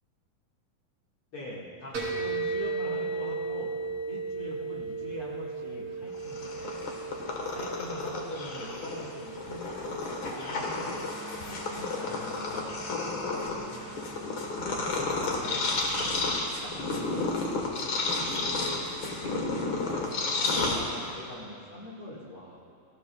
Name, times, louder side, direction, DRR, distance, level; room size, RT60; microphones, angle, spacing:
voice 1, 1.3-3.8 4.1-7.0 7.5-11.0 11.4-12.8 13.4-14.1 14.5-16.1 16.6-17.3 18.0-22.7, left 1 dB, 45° left, -5 dB, 2.1 m, -43 dB
sound 1, 1.9-19.3, right 4 dB, 45° right, 3.4 m, -38 dB
Purr, 6.1-21.3, left 3 dB, 65° left, 1.2 m, -32 dB
Wind instrument woodwind instrument, 10.8-15.6, right 1 dB, 90° right, 0.5 m, -48 dB
19.0 x 15.5 x 2.3 m, 2.3 s
omnidirectional pair, 4.1 m